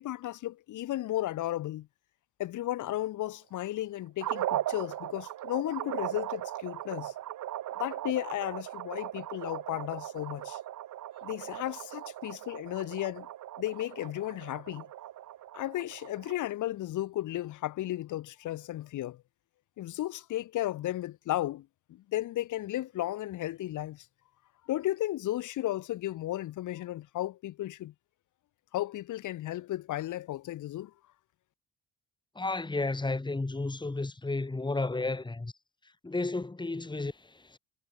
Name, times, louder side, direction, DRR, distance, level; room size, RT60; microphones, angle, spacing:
voice 1, 0.0-1.9 2.4-7.1 7.8-10.6 11.2-13.3 13.6-14.9 15.5-19.2 19.8-24.1 24.7-27.9 28.7-30.9, left 14 dB, 80° left, 2.2 m, -34 dB
sound 1, 4.2-16.5, right 13 dB, 75° right, 2.0 m, -38 dB
voice 2, 32.4-35.5 36.0-37.6, left 3 dB, 15° left, 2.3 m, -32 dB
cardioid pair, 90°, 30 cm